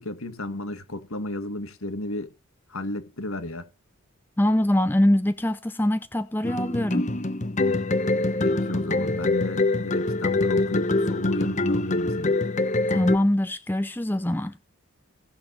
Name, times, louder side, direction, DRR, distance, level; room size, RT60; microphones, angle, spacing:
voice 1, 0.0-2.3 2.7-3.7 8.4-12.4, left 1 dB, 65° left, 1.8 m, -33 dB
voice 2, 4.4-7.0 12.9-14.6, left 1 dB, 10° left, 0.5 m, -23 dB
sound 1, 6.4-13.2, left 2 dB, 30° left, 1.0 m, -24 dB
17.5 x 6.6 x 4.1 m
head